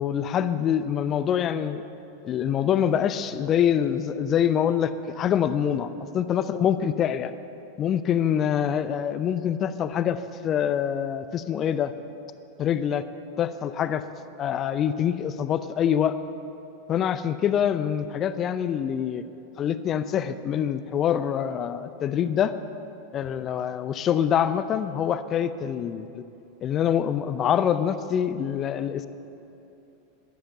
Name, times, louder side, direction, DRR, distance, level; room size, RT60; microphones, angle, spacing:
voice 1, 0.0-1.8 2.2-7.3 7.8-11.9 12.6-13.0 13.4-14.0 14.4-16.2 16.9-19.2 19.6-22.5 23.1-26.2 26.6-29.1, left 9 dB, 35° left, 13 dB, 0.6 m, -25 dB
13.0 x 11.5 x 6.9 m, 2.8 s
figure-of-eight pair, 85°, 0 cm